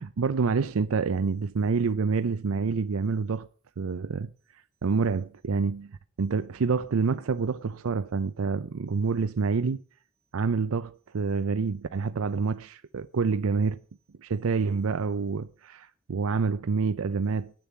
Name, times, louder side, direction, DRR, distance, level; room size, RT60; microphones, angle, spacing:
voice 1, 0.0-3.5 3.8-4.3 4.8-9.8 10.3-13.8 14.2-17.5, right 5 dB, 80° right, 0.5 m, -27 dB
9.1 x 6.9 x 8.2 m
head